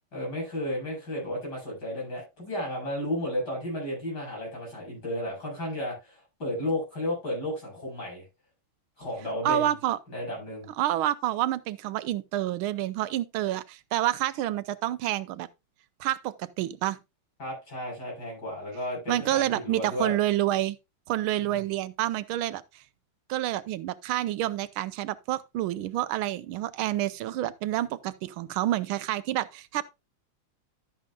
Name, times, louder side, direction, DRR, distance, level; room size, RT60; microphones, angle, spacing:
voice 1, 0.1-8.2 9.0-9.7 10.1-10.7 17.4-20.1 21.4-21.6, left 1 dB, 50° left, 7.8 m, -33 dB
voice 2, 9.4-10.0 10.8-15.5 16.0-17.0 19.1-20.8 21.1-22.8 23.3-29.8, right 13 dB, 85° right, 1.5 m, -28 dB
12.0 x 8.8 x 2.3 m
omnidirectional pair, 2.2 m